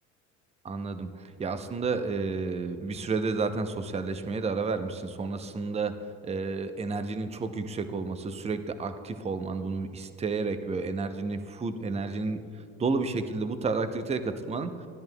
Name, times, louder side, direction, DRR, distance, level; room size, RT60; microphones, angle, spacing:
voice 1, 0.6-14.9, right 4 dB, 15° right, 9 dB, 0.6 m, -31 dB
14.5 x 10.5 x 2.2 m, 2.4 s
hypercardioid pair, 80°, 39 cm